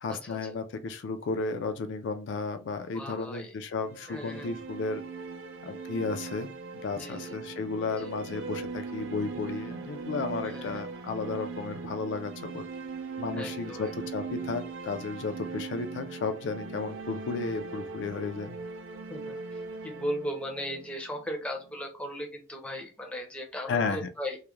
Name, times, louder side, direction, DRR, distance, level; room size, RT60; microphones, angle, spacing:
voice 1, 0.0-5.0 5.6-6.5 6.7-12.6 13.2-18.6 23.7-24.1, left 4 dB, 70° left, 0.3 m, -33 dB
voice 2, 2.9-3.5 4.1-4.6 7.0-7.5 7.9-8.1 10.4-10.8 13.3-13.9 19.1-24.4, equal, 5° left, 0.5 m, -37 dB
sound 1, 3.8-21.7, right 4 dB, 85° right, 0.4 m, -40 dB
2.3 x 2.1 x 3.0 m
head